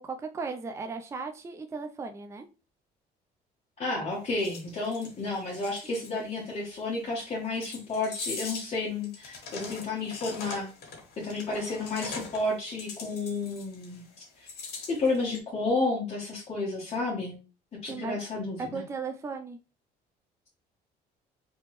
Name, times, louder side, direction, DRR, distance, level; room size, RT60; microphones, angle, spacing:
voice 1, 0.0-2.4 17.9-18.2 18.6-19.6, right 4 dB, 15° right, 5 dB, 0.4 m, -36 dB
voice 2, 3.8-10.7 11.2-14.0 14.4-14.5 14.9-17.4 17.8-18.8, left 3 dB, 35° left, -5 dB, 1.4 m, -31 dB
sound 1, 4.4-6.1 7.6-8.8 9.0-12.5 12.8-14.0 14.5-15.4, left 4 dB, 75° left, 1.4 m, -41 dB
3.4 x 3.0 x 3.0 m, 0.34 s
cardioid pair, 110°, 17 cm